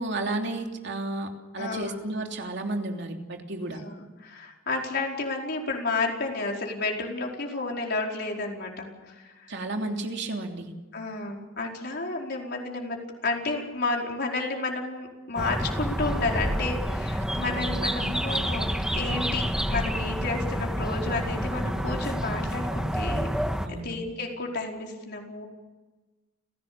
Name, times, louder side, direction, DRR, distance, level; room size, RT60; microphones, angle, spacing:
voice 1, 0.0-3.8 9.5-10.7 17.5-17.8 23.6-24.0, right 2 dB, 60° right, 3 dB, 3.1 m, -32 dB
voice 2, 1.6-1.9 3.6-9.5 10.9-18.7 18.9-23.3 23.7-25.5, left 3 dB, 55° left, 0 dB, 4.8 m, -31 dB
sound 1, 15.4-23.7, equal, 5° right, 1.5 m, -28 dB
30.0 x 16.5 x 7.0 m, 1.2 s
head